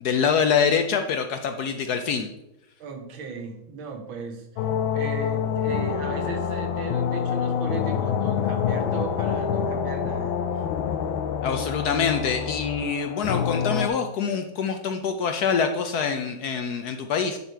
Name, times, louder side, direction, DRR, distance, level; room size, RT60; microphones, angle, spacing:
voice 1, 0.0-2.3 11.4-17.4, left 6 dB, 70° left, 6 dB, 1.0 m, -25 dB
voice 2, 2.8-10.6, right 4 dB, 80° right, 5 dB, 1.9 m, -37 dB
sound 1, 4.6-13.9, left 7 dB, 85° left, 1.4 m, -26 dB
10.5 x 4.2 x 4.5 m, 0.89 s
omnidirectional pair, 2.1 m